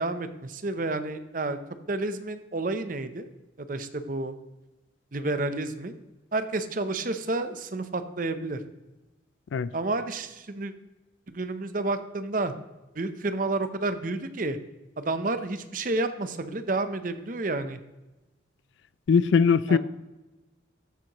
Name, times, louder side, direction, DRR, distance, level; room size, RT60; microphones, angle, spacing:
voice 1, 0.0-1.6 1.9-3.3 3.7-4.3 5.1-5.9 6.3-8.6 9.7-10.7 11.3-12.5 13.0-14.6 15.0-17.8 19.7-19.8, right 2 dB, 45° right, 0.7 m, -30 dB
voice 2, 19.1-19.8, left 6 dB, 75° left, 0.3 m, -20 dB
14.0 x 7.3 x 3.0 m
head